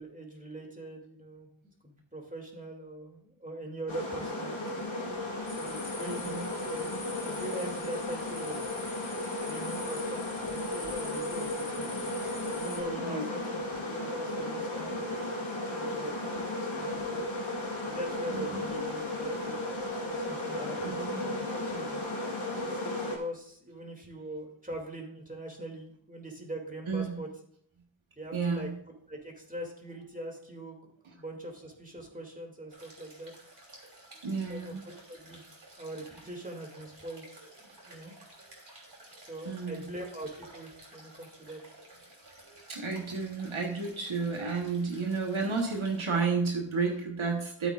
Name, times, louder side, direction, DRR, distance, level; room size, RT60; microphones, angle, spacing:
voice 1, 0.0-1.5 1.8-4.9 5.6-6.3 6.7-8.6 9.5-12.1 12.5-17.2 17.8-19.6 19.9-22.0 22.8-27.3 28.2-28.7 29.1-30.8 31.1-33.3 34.5-35.4 35.8-37.3 37.6-38.1 39.2-41.6, right 1 dB, 15° right, 1 dB, 2.5 m, -42 dB
sound 1, 3.9-23.2, left 1 dB, 85° left, 2.2 m, -35 dB
sound 2, 5.5-12.8, left 3 dB, 60° left, 1.7 m, -45 dB
voice 2, 6.1-6.4 13.0-13.3 18.3-18.6 20.8-21.2 26.9-27.1 28.3-28.7 34.2-34.8 39.4-39.8 42.5-47.7, right 4 dB, 85° right, 1 dB, 1.3 m, -32 dB
sound 3, 32.7-46.0, right 1 dB, 60° right, 3.4 m, -54 dB
13.5 x 8.2 x 2.4 m, 0.66 s
wide cardioid pair, 40°, 47 cm